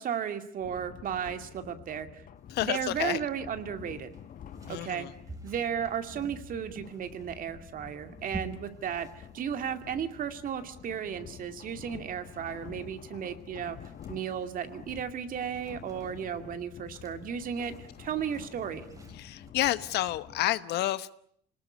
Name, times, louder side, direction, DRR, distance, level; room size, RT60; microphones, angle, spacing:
voice 1, 0.0-2.2 2.6-4.1 4.7-5.1 5.4-13.8 14.1-18.9, right 8 dB, 55° right, 8 dB, 2.5 m, -34 dB
sound 1, 0.6-20.5, left 9 dB, 55° left, 1.5 m, -49 dB
sound 2, 2.4-19.5, right 1 dB, 20° right, 3.8 m, -51 dB
voice 2, 2.5-3.2 4.7-5.1 19.1-21.1, left 14 dB, 75° left, 15 dB, 1.1 m, -30 dB
27.0 x 19.5 x 9.8 m, 0.68 s
cardioid pair, 110°, 17 cm